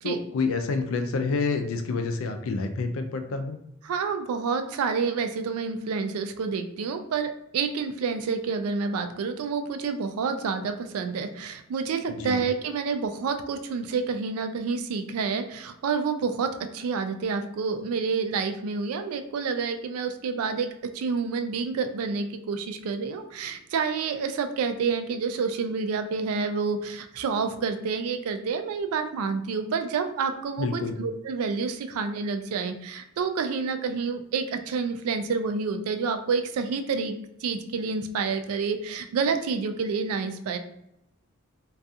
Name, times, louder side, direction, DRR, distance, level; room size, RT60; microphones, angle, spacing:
voice 1, 0.0-3.6 12.1-12.4 30.6-30.9, left 4 dB, 65° left, 6 dB, 0.3 m, -28 dB
voice 2, 3.8-37.1 37.4-40.6, right 5 dB, 80° right, 8 dB, 0.3 m, -28 dB
2.3 x 2.3 x 2.6 m, 0.81 s
head